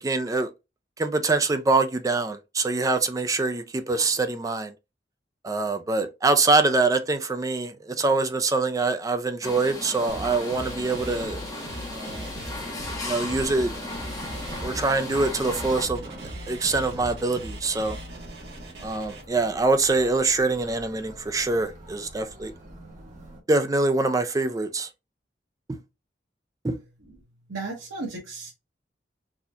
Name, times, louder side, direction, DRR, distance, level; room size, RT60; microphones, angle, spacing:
voice 1, 0.0-0.5 1.0-4.7 5.4-11.4 11.9-12.3 13.0-13.7 14.6-16.1 16.5-18.0 18.8-22.5 23.5-24.9 25.7-25.8 26.6-26.8, right 3 dB, 20° right, 0.4 m, -24 dB
sound 1, 9.4-15.9, left 2 dB, 20° left, 1.2 m, -36 dB
sound 2, 10.1-19.2, right 1 dB, 65° right, 1.6 m, -39 dB
sound 3, 12.4-23.4, right 1 dB, 40° right, 1.3 m, -45 dB
voice 2, 27.5-28.5, right 3 dB, 90° right, 1.2 m, -34 dB
4.0 x 2.8 x 2.4 m
head